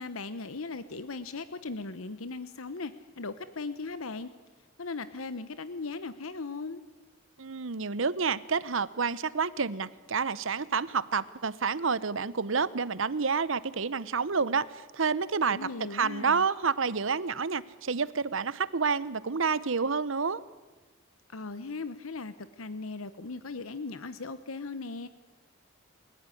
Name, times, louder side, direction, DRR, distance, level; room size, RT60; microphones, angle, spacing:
voice 1, 0.0-4.3 4.8-6.8 15.5-16.4 21.3-25.1, left 3 dB, 90° left, 13 dB, 1.0 m, -38 dB
voice 2, 7.4-20.4, right 5 dB, 70° right, 18 dB, 0.9 m, -29 dB
29.0 x 15.5 x 9.9 m, 1.3 s
head